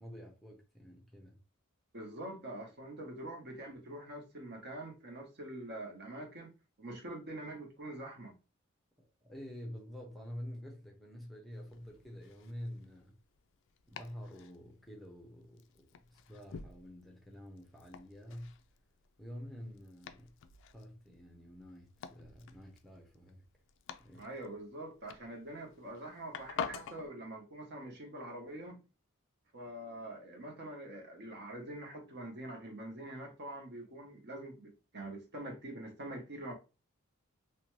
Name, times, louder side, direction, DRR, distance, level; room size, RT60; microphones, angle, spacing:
voice 1, 0.0-1.4 9.0-13.2 13.9-18.5 19.2-20.3 20.7-23.5 24.0-24.3, equal, ahead, 0.6 m, -48 dB
voice 2, 1.9-6.5 6.8-8.4 24.2-28.8 29.5-36.5, right 1 dB, 50° right, 0.8 m, -45 dB
Domestic sounds home sounds, 11.5-27.1, left 7 dB, 60° left, 0.3 m, -49 dB
2.6 x 2.2 x 3.0 m
head